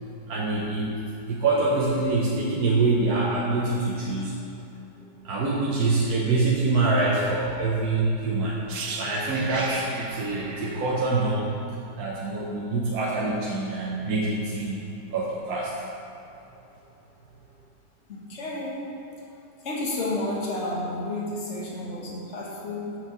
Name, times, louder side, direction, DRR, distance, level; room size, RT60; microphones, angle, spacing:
voice 1, 0.3-1.0 1.3-4.3 5.2-8.6 9.0-11.5 12.0-14.9 15.1-15.7, right 3 dB, 65° right, -5 dB, 1.3 m, -25 dB
sound 1, 8.7-12.5 12.8-13.0, right 3 dB, 85° right, 0.5 m, -36 dB
voice 2, 18.1-18.9 19.6-23.0, left 2 dB, 45° left, -3 dB, 1.5 m, -31 dB
7.6 x 6.0 x 5.9 m, 2.9 s
omnidirectional pair, 1.9 m